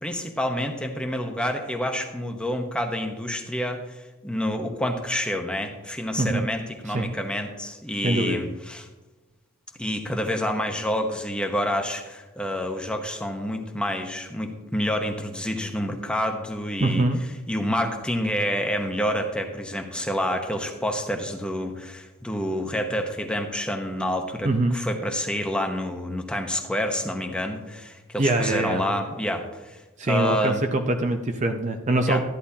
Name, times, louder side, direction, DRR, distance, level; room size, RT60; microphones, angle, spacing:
voice 1, 0.0-8.9 9.8-17.1 17.5-29.8 30.1-30.6 32.1-32.2, equal, 5° left, 4 dB, 0.9 m, -28 dB
voice 2, 8.0-8.4 16.8-17.2 24.4-24.8 28.2-28.8 30.0-32.2, right 2 dB, 35° right, 5 dB, 0.6 m, -23 dB
13.5 x 10.0 x 2.8 m, 1.1 s
head